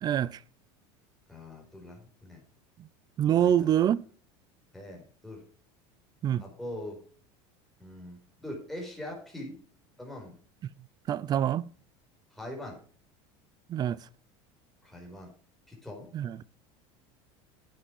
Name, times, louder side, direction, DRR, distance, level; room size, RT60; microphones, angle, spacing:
voice 1, 0.0-0.4 2.8-2.9 3.2-4.0 6.2-6.4 11.1-11.7 13.7-14.1 16.1-16.4, right 10 dB, 30° right, 0.4 m, -26 dB
voice 2, 1.3-2.4 3.3-3.7 4.7-5.4 6.4-7.0 7.8-9.5 10.0-10.3 12.3-12.8 14.8-15.3 15.7-16.1, left 1 dB, ahead, 4.6 m, -42 dB
9.7 x 7.6 x 5.2 m
supercardioid pair, 140°, 14 cm